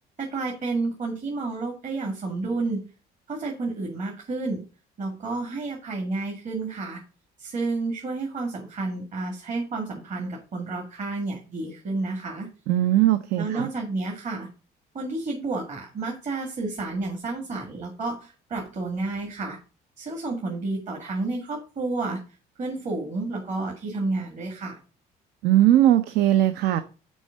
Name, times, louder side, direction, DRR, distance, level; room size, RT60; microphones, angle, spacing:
voice 1, 0.2-2.8 3.3-4.6 5.0-7.0 7.4-12.5 13.4-14.5 14.9-19.6 20.0-22.2 22.6-24.8, right 3 dB, 45° right, 0 dB, 2.0 m, -30 dB
voice 2, 12.7-13.7 25.4-26.8, right 13 dB, 80° right, 12 dB, 0.6 m, -19 dB
6.3 x 4.5 x 6.5 m, 0.36 s
cardioid pair, 110°, 17 cm